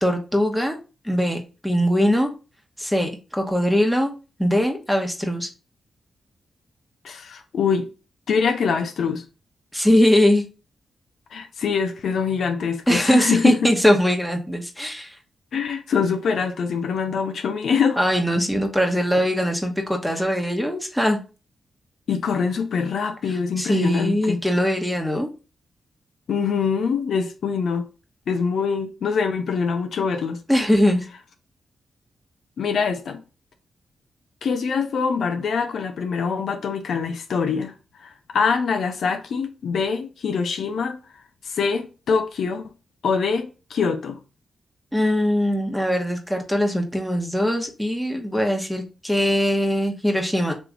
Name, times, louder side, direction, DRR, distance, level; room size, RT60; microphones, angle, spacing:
voice 1, 0.0-0.8 1.0-2.3 2.8-4.1 4.4-5.5 9.7-10.4 12.9-15.1 18.0-21.2 23.3-25.3 30.5-31.0 44.9-50.5, equal, ahead, 1.1 m, -21 dB
voice 2, 7.0-7.9 8.3-9.2 11.3-13.6 15.5-18.0 20.1-20.2 22.1-24.4 26.3-27.9 28.3-30.4 32.6-33.2 34.4-37.7 38.0-41.0 41.4-42.7 43.0-44.2, left 5 dB, 75° left, 0.5 m, -24 dB
3.3 x 3.0 x 3.8 m
cardioid pair, 55°, 0 cm